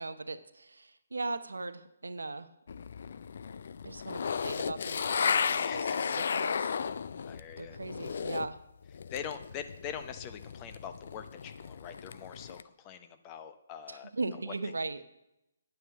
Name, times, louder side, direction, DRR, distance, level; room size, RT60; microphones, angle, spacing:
voice 1, 0.0-2.5 3.8-6.8 7.6-8.6 13.9-15.0, right 3 dB, 75° right, 11 dB, 0.8 m, -38 dB
sound 1, 2.7-8.6 8.8-12.6, left 6 dB, 55° left, 0.4 m, -34 dB
voice 2, 5.5-6.0 7.2-7.8 9.1-14.1 14.5-14.6, left 8 dB, 25° left, 9 dB, 0.8 m, -43 dB
9.3 x 8.7 x 5.9 m, 0.86 s
figure-of-eight pair, 140°, 0 cm